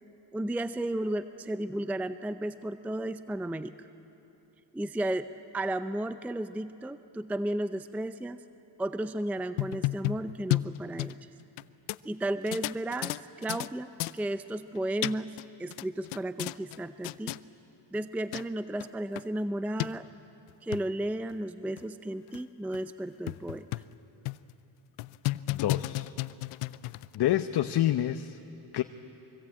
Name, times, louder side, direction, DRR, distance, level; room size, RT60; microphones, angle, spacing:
voice 1, 0.3-3.9 4.7-5.3 5.5-8.4 8.8-11.2 12.0-17.4 17.9-20.1 20.6-23.7, right 1 dB, 5° right, 12 dB, 0.5 m, -33 dB
sound 1, 9.4-11.6 11.9-12.0 12.5-13.7 14.0-14.2 14.8-15.4 15.7-16.8 17.0-17.4 18.0-18.1 18.3-18.4 18.8-18.9 19.2-19.3 19.8-19.9 20.5-20.8 21.3-21.4 21.8-21.9 22.3-22.4 22.7-22.8 23.3-23.9 24.3-24.5 25.0-27.2, left 19 dB, 90° left, 0.6 m, -32 dB
voice 2, 25.5-26.1 27.1-28.4 28.7-28.8, left 12 dB, 50° left, 9 dB, 0.8 m, -28 dB
24.0 x 23.0 x 8.7 m, 3.0 s
cardioid pair, 95°, 49 cm